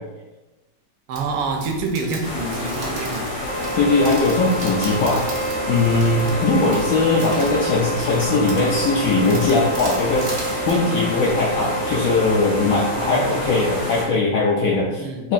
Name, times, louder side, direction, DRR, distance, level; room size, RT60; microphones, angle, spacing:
sound 1, 1.1-10.8, right 3 dB, 70° right, 1.4 m, -37 dB
voice 1, 1.1-3.3 6.2-7.6 12.9-13.5 13.7-14.2 15.0-15.2, right 3 dB, 90° right, 3 dB, 1.3 m, -29 dB
sound 2, 2.2-14.0, left 1 dB, 10° left, 1.2 m, -29 dB
Wind instrument woodwind instrument, 3.4-13.9, right 2 dB, 40° right, 1.4 m, -30 dB
voice 2, 3.8-5.2 5.7-15.0 15.2-15.3, left 3 dB, 70° left, -5 dB, 0.8 m, -20 dB
4.5 x 2.7 x 2.4 m, 1.1 s
omnidirectional pair, 2.0 m